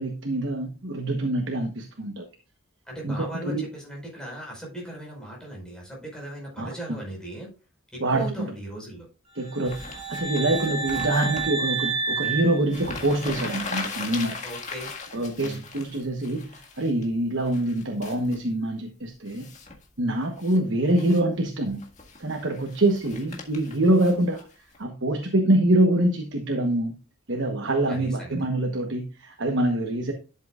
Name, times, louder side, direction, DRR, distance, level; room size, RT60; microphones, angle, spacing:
voice 1, 0.0-2.2 3.0-3.6 6.6-6.7 8.0-8.5 9.3-14.4 15.1-19.5 20.0-21.8 22.2-24.5 24.8-26.9 27.3-30.1, right 1 dB, 60° right, 4 dB, 1.1 m, -25 dB
voice 2, 2.8-7.5 7.9-9.1 14.4-14.9 15.4-15.6 27.8-28.3, right 1 dB, 5° left, -3 dB, 5.0 m, -38 dB
sound 1, 9.4-13.5, right 4 dB, 25° right, 2.9 m, -30 dB
sound 2, 9.6-11.5 12.4-12.5 12.7-17.1 17.4-18.4 19.3-19.8 20.2-20.6 20.9-21.2 21.6-24.8, left 4 dB, 35° left, 1.8 m, -39 dB
11.5 x 7.6 x 2.4 m, 0.33 s
head